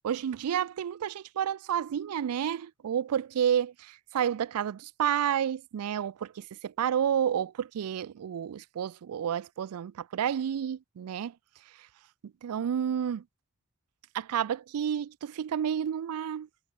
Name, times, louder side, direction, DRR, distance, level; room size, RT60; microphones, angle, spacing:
voice 1, 0.0-11.4 11.6-11.9 12.2-13.3 14.1-16.5, right 9 dB, 80° right, 0.4 m, -30 dB
head